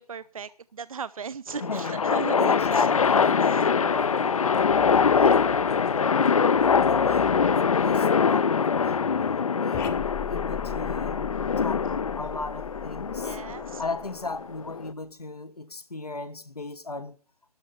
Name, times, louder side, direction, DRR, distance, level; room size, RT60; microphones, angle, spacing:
voice 1, 0.0-2.9 3.4-4.0 13.2-13.8, right 6 dB, 65° right, 0.6 m, -38 dB
sound 1, 1.5-14.9, left 6 dB, 65° left, 0.6 m, -23 dB
voice 2, 1.6-2.0 2.3-4.7 5.1-6.3 6.9-9.1 9.5-11.3 11.6-13.4 13.8-17.2, left 3 dB, 85° left, 1.3 m, -36 dB
sound 2, 2.6-9.4, left 7 dB, 40° left, 1.3 m, -42 dB
sound 3, 9.7-14.4, left 8 dB, 15° left, 0.6 m, -39 dB
12.5 x 5.7 x 9.0 m
figure-of-eight pair, 145°, 19 cm